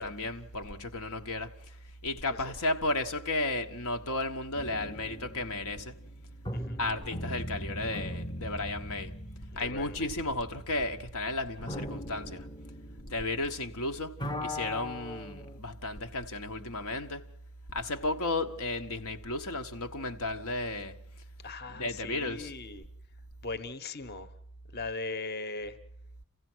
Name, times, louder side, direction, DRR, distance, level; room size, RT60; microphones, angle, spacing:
voice 1, 0.0-1.8 2.0-6.0 6.8-9.2 9.6-12.5 13.1-17.2 17.7-21.0 21.7-22.5, left 2 dB, 80° left, 1.3 m, -34 dB
sound 1, 4.5-13.8 14.1-15.6, left 1 dB, 20° left, 0.7 m, -40 dB
voice 2, 9.5-10.1 21.4-22.8 23.4-24.3 24.7-25.8, left 3 dB, 45° left, 1.1 m, -39 dB
28.5 x 15.5 x 6.2 m
head